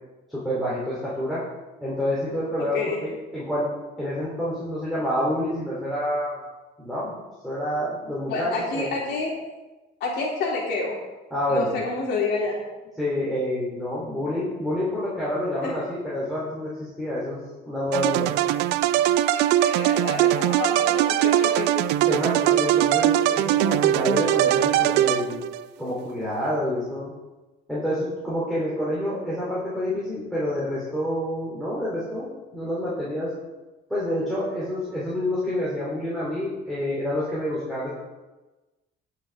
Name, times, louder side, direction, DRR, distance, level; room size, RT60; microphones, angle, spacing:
voice 1, 0.3-1.4 1.8-3.7 4.0-6.4 6.8-7.1 7.4-8.9 11.3-11.8 13.0-18.3 22.0-25.4 25.8-27.1 27.7-33.3 33.9-37.9, left 1 dB, ahead, -9 dB, 3.8 m, -28 dB
voice 2, 2.6-3.0 8.3-9.4 10.0-11.0 11.5-12.6 15.6-15.7 19.3-21.7, left 3 dB, 80° left, -2 dB, 3.3 m, -28 dB
sound 1, 17.9-25.6, right 13 dB, 90° right, 0.4 m, -21 dB
17.0 x 6.4 x 3.8 m, 1.1 s
cardioid pair, 110°, 17 cm